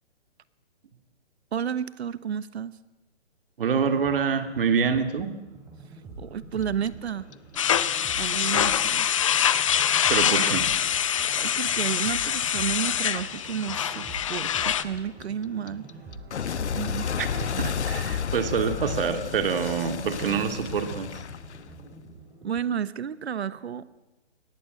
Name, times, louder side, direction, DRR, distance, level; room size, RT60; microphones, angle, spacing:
voice 1, 1.5-2.8 6.2-7.3 8.2-9.1 11.2-15.9 16.7-17.1 22.4-23.8, right 8 dB, 70° right, 16 dB, 1.3 m, -31 dB
voice 2, 3.6-5.3 10.1-10.7 17.2-17.3 17.6-21.1, right 6 dB, 55° right, 8 dB, 2.7 m, -26 dB
sound 1, 3.8-22.7, right 2 dB, 10° right, 3.3 m, -45 dB
Clock, 6.6-9.6 9.9-12.9 13.1-22.0, left 7 dB, 75° left, 1.3 m, -32 dB
sound 2, 7.6-14.8, left 9 dB, 30° left, 0.7 m, -24 dB
23.5 x 19.5 x 7.9 m, 0.97 s
hypercardioid pair, 165°, 34 cm